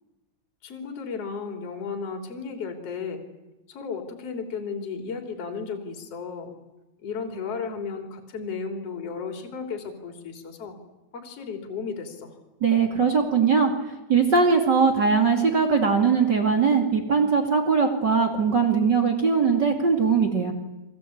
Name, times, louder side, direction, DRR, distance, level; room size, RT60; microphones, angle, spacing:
voice 1, 0.6-3.3 3.7-6.5 7.0-10.8 11.1-12.3, left 5 dB, 35° left, 5 dB, 3.7 m, -34 dB
voice 2, 12.6-20.5, right 5 dB, 45° right, 4 dB, 1.4 m, -21 dB
28.5 x 24.5 x 8.7 m, 1.0 s
omnidirectional pair, 5.9 m